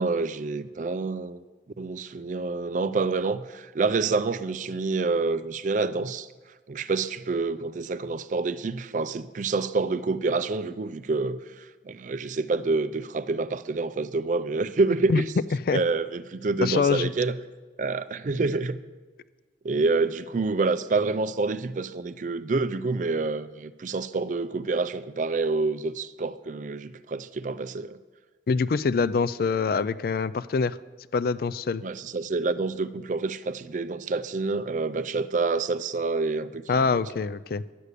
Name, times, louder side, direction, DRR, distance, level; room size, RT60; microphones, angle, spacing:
voice 1, 0.0-1.4 1.8-6.3 6.7-15.3 15.7-17.4 17.8-18.8 19.6-28.0 31.8-37.0, right 3 dB, 45° right, 0.4 m, -27 dB
voice 2, 16.6-17.1 28.5-30.8 31.1-31.8 36.7-37.6, left 5 dB, 55° left, 0.3 m, -24 dB
11.0 x 8.3 x 6.6 m
head